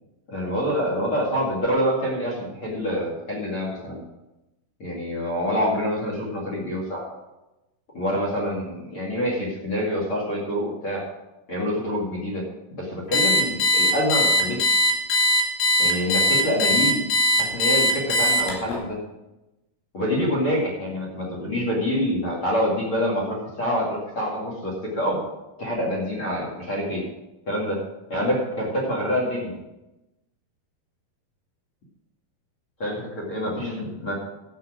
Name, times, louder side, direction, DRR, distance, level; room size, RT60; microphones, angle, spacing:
voice 1, 0.3-4.0 4.8-7.1 7.9-11.0 11.5-12.4 12.7-14.8 15.8-17.0 17.4-19.0 19.9-25.2 25.6-27.0 27.5-27.8 28.1-29.6 32.8-34.1, equal, 40° left, -2 dB, 2.7 m, -26 dB
Alarm, 13.1-18.8, equal, 85° left, 4.3 m, -20 dB
12.5 x 7.7 x 5.0 m, 0.98 s
omnidirectional pair, 4.5 m